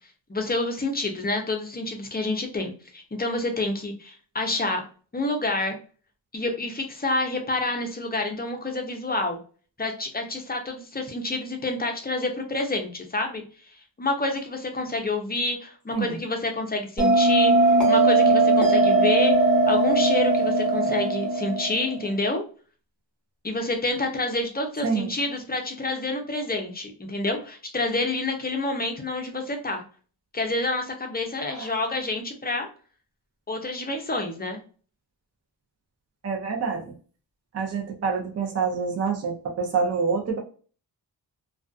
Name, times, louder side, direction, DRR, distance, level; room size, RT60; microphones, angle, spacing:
voice 1, 0.3-4.8 5.1-5.8 6.3-9.4 9.8-13.4 14.0-19.3 19.7-22.4 23.4-29.8 30.3-32.7 33.5-34.6, left 2 dB, 20° left, 3 dB, 0.5 m, -28 dB
Bell, 17.0-22.1, right 2 dB, ahead, 0.9 m, -19 dB
voice 2, 36.2-36.9 37.5-40.4, right 5 dB, 35° right, 0 dB, 0.6 m, -27 dB
2.4 x 2.3 x 2.4 m, 0.40 s
wide cardioid pair, 115°, 43 cm